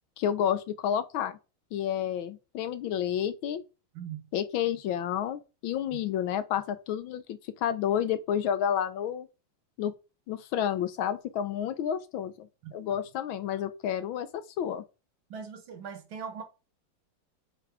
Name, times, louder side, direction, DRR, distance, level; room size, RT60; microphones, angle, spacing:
voice 1, 0.2-1.4 1.7-3.6 4.3-9.3 9.8-9.9 10.3-14.8, left 9 dB, 75° left, 1.3 m, -30 dB
voice 2, 12.6-13.0 15.3-16.4, right 7 dB, 70° right, 1.9 m, -40 dB
8.3 x 3.2 x 4.9 m
omnidirectional pair, 2.4 m